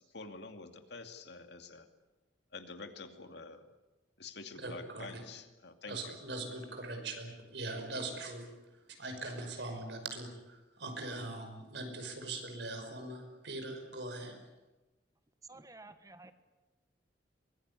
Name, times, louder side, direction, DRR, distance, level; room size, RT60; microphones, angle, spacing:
voice 1, 0.0-1.9 2.5-3.7 4.2-6.2, left 3 dB, 65° left, 6 dB, 2.5 m, -48 dB
voice 2, 4.6-5.2 5.9-14.4, right 2 dB, 65° right, 5 dB, 5.6 m, -41 dB
voice 3, 15.5-16.3, right 2 dB, 20° right, 10 dB, 1.3 m, -52 dB
23.5 x 20.5 x 9.7 m, 1.1 s
head